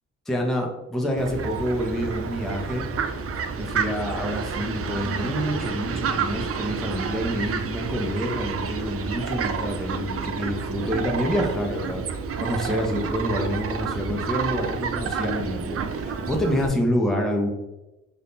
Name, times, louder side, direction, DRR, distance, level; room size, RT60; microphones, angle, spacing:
voice 1, 0.3-2.9 3.6-12.0 12.4-17.5, equal, ahead, 0 dB, 0.7 m, -27 dB
Fowl, 1.2-16.7, right 5 dB, 45° right, 0.5 m, -29 dB
3.6 x 2.7 x 2.7 m, 1.0 s
supercardioid pair, 55°, 33 cm